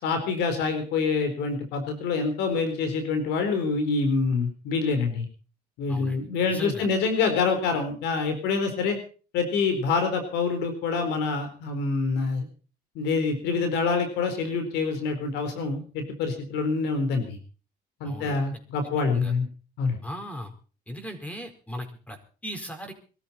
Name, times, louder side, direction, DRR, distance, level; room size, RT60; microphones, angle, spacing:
voice 1, 0.0-5.2 5.8-9.0 9.3-12.5 12.9-17.4 18.0-19.4 19.8-20.0, left 4 dB, 90° left, 7 dB, 4.2 m, -26 dB
voice 2, 5.9-6.2 6.5-6.9 18.0-18.4 19.1-19.3 20.0-20.5 20.9-22.9, equal, 10° left, 6 dB, 4.7 m, -37 dB
22.5 x 13.5 x 4.4 m, 0.38 s
cardioid pair, 110°, 17 cm